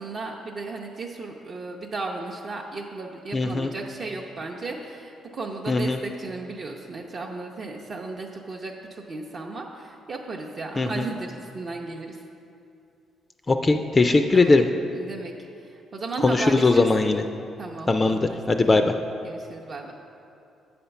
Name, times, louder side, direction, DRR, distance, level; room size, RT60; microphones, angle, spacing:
voice 1, 0.0-12.2 14.3-14.6 14.9-15.3 15.6-16.9 17.6-18.4 19.2-19.9, right 3 dB, 50° right, -1 dB, 0.6 m, -35 dB
voice 2, 3.3-3.7 5.7-6.0 10.8-11.0 13.5-14.6 16.2-17.2 17.9-18.9, left 3 dB, 25° left, 6 dB, 0.3 m, -20 dB
7.8 x 4.3 x 6.8 m, 2.6 s
cardioid pair, 90°, 0 cm